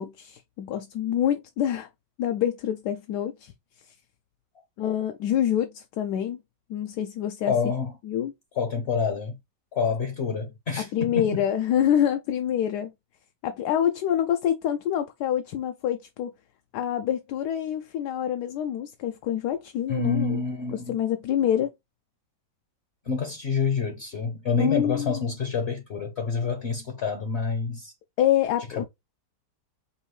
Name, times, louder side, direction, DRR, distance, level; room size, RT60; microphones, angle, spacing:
voice 1, 0.0-1.9 2.2-3.5 4.8-6.4 6.7-7.5 8.1-8.3 10.8-12.9 13.4-16.3 16.7-20.4 20.7-21.7 24.6-25.3 28.2-28.8, left 10 dB, 75° left, 1.1 m, -26 dB
voice 2, 7.5-7.9 8.5-9.4 9.7-11.4 19.9-21.0 23.1-27.9 28.7-28.8, left 5 dB, 50° left, 0.9 m, -27 dB
5.4 x 2.5 x 3.1 m
omnidirectional pair, 1.9 m